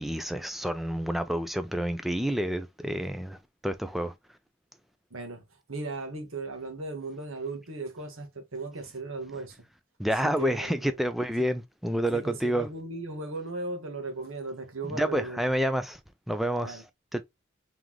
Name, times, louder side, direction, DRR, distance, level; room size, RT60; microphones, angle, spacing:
voice 1, 0.0-3.4 3.6-4.1 10.0-12.7 14.8-16.0 16.3-16.8 17.1-17.2, equal, ahead, 0.4 m, -29 dB
voice 2, 5.1-5.4 5.7-9.6 10.4-10.8 12.1-15.4 16.6-16.8, right 3 dB, 85° right, 1.5 m, -37 dB
3.8 x 3.5 x 3.0 m
head